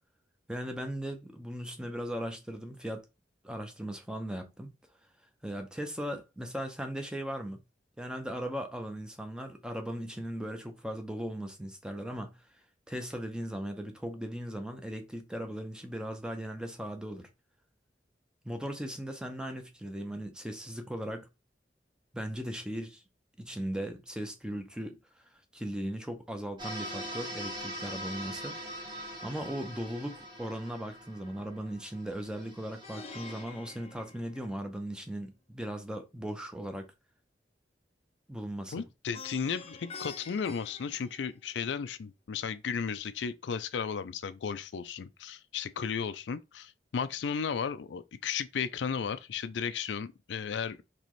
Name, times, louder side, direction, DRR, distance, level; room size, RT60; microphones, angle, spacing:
voice 1, 0.5-3.0 3.4-4.7 5.4-7.6 8.0-12.3 12.9-17.3 18.4-21.3 22.1-23.0 23.4-25.0 25.5-28.6 29.2-36.9 38.3-38.7, equal, 5° right, 0.7 m, -38 dB
sound 1, 26.6-33.4, equal, 30° right, 1.4 m, -42 dB
Plucked string instrument, 32.8-35.0 39.1-41.7, left 4 dB, 35° left, 0.5 m, -48 dB
voice 2, 38.7-50.8, left 6 dB, 85° left, 0.4 m, -34 dB
4.1 x 3.0 x 3.1 m
head